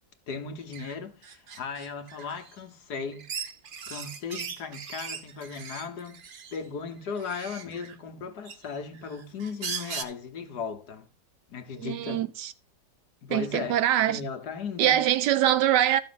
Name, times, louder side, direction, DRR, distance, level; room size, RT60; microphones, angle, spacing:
voice 1, 0.3-3.3 3.9-6.3 6.5-11.1 11.5-12.2 13.2-15.0, left 5 dB, 70° left, 1.7 m, -37 dB
sound 1, 0.7-0.9 1.2-2.5 3.1-6.6 7.2-8.0 8.5-10.0, right 6 dB, 50° right, 0.6 m, -39 dB
voice 2, 11.8-12.5 13.3-14.2 14.8-16.0, right 12 dB, 80° right, 1.3 m, -23 dB
12.5 x 6.4 x 4.0 m
omnidirectional pair, 1.8 m